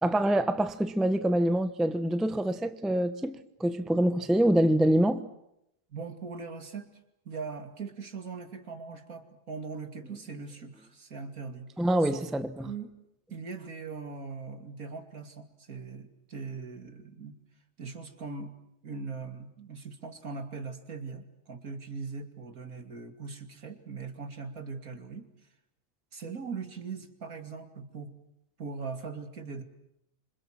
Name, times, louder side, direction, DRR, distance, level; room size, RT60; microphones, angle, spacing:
voice 1, 0.0-5.3 11.8-12.7, right 1 dB, ahead, 0.9 m, -25 dB
voice 2, 5.9-6.9 7.2-11.7 12.0-12.2 12.6-12.9 13.3-17.4 17.8-18.5 18.8-25.3 26.1-28.1 28.6-29.6, right 4 dB, 65° right, 3.0 m, -40 dB
27.0 x 26.5 x 7.6 m
omnidirectional pair, 1.6 m